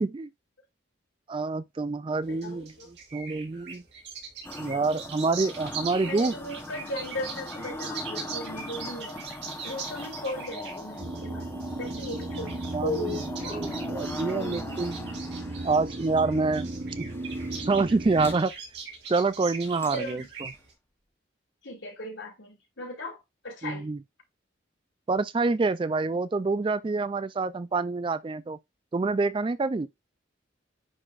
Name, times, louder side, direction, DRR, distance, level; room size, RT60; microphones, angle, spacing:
voice 1, 1.3-3.8 4.6-6.3 12.7-13.2 13.5-15.0 15.6-16.7 17.0-17.1 17.7-18.5 19.1-20.2 23.6-24.0 25.1-28.6 28.9-29.9, right 3 dB, 25° right, 0.3 m, -27 dB
sound 1, 2.2-20.7, right 5 dB, 60° right, 2.9 m, -41 dB
voice 2, 2.3-2.9 6.0-9.3 9.6-11.5 11.8-12.5 12.8-13.6 14.3-14.7 19.9-20.3 21.6-23.9, left 1 dB, 75° left, 2.7 m, -37 dB
sound 2, 4.4-18.3 19.6-20.1 20.5-20.6, left 1 dB, 10° left, 0.9 m, -41 dB
sound 3, 11.0-18.4, right 2 dB, 40° right, 0.7 m, -36 dB
9.8 x 4.1 x 2.5 m
head